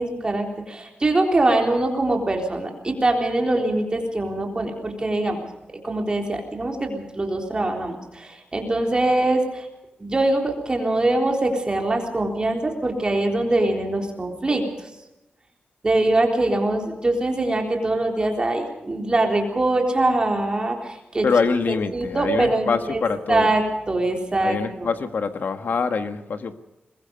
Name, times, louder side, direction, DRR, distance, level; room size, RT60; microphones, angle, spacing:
voice 1, 0.0-5.5 5.8-9.7 10.0-14.6 15.8-21.3 21.7-23.0 23.3-24.9, right 2 dB, 25° right, 2 dB, 3.7 m, -23 dB
voice 2, 21.2-23.5 24.4-26.5, left 5 dB, 60° left, 8 dB, 1.6 m, -24 dB
22.5 x 21.5 x 5.3 m, 0.92 s
wide cardioid pair, 140°, 4 cm